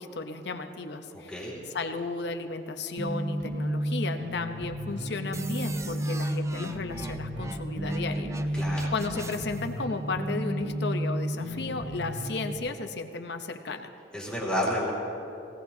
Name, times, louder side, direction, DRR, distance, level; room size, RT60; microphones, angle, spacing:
voice 1, 0.0-1.3 1.7-8.3 8.9-13.9, left 3 dB, 65° left, 6 dB, 0.9 m, -34 dB
voice 2, 1.1-1.6 8.5-8.9 14.1-14.9, left 1 dB, 5° left, -6 dB, 2.4 m, -30 dB
sound 1, 3.0-12.6, equal, 70° right, 1.3 m, -32 dB
sound 2, 5.3-9.7, right 2 dB, 15° right, 0.5 m, -43 dB
20.5 x 17.0 x 2.8 m, 2.8 s
head